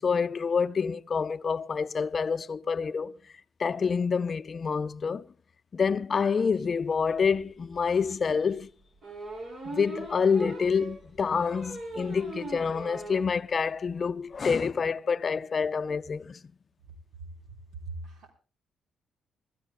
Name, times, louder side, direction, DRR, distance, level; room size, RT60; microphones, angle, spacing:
voice 1, 0.0-3.2 3.6-5.3 5.7-8.7 9.6-16.4, left 5 dB, 40° left, 0.6 m, -27 dB
sound 1, 7.3-7.4 7.7-7.8 9.0-13.3 13.7-13.8 14.0-14.1 14.3-14.6, right 2 dB, 55° right, 7.2 m, -40 dB
voice 2, 16.8-18.3, right 3 dB, 75° right, 3.9 m, -43 dB
27.0 x 14.5 x 2.2 m
cardioid pair, 90°, 0 cm